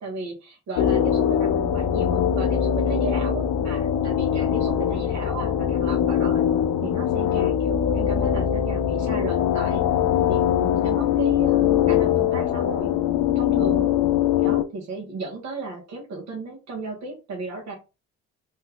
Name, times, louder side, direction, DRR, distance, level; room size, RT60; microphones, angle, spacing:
voice 1, 0.0-6.4 6.8-9.8 10.3-12.9 13.3-13.9 14.4-17.7, right 3 dB, 65° right, -3 dB, 1.3 m, -35 dB
sound 1, 0.8-14.6, left 9 dB, 85° left, 0.5 m, -22 dB
3.1 x 2.4 x 3.5 m, 0.29 s
cardioid pair, 90°, 30 cm